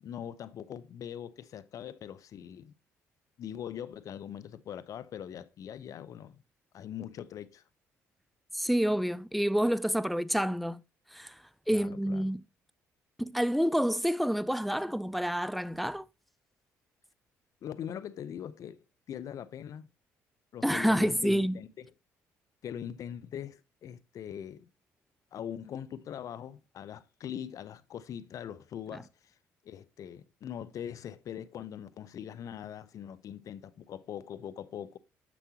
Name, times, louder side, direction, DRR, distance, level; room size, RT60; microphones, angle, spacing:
voice 1, 0.0-2.7 3.4-6.4 6.7-7.6 11.7-12.3 17.6-19.9 20.5-21.7 22.6-24.7 25.3-29.3 29.6-35.0, left 9 dB, 60° left, 0.6 m, -42 dB
voice 2, 8.5-10.8 11.1-11.4 11.7-12.4 13.2-16.0 20.6-21.6, equal, ahead, 0.3 m, -28 dB
6.7 x 6.2 x 2.8 m
supercardioid pair, 60°, 6 cm